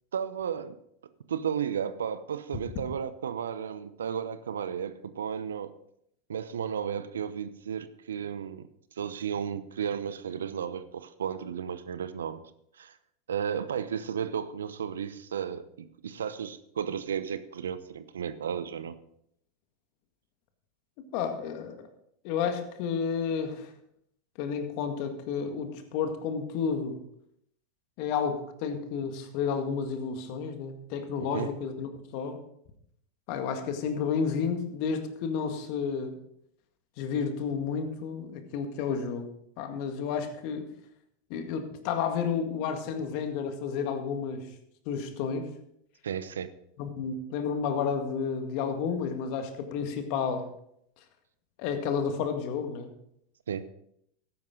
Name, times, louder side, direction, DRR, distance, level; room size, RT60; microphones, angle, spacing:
voice 1, 0.1-0.7 1.3-5.7 6.3-8.6 9.0-12.4 12.8-12.9 13.3-15.7 16.0-18.9 31.2-31.5 46.0-46.5 53.5-53.6, right 8 dB, 80° right, 13 dB, 0.8 m, -33 dB
voice 2, 21.0-21.8 22.2-23.7 24.4-27.0 28.0-32.4 33.3-36.2 37.0-39.3 39.6-40.7 41.3-44.4 44.9-45.5 46.8-50.5 51.6-52.9, left 6 dB, 55° left, 6 dB, 1.9 m, -31 dB
13.5 x 10.5 x 3.9 m, 0.73 s
hypercardioid pair, 95°, 0 cm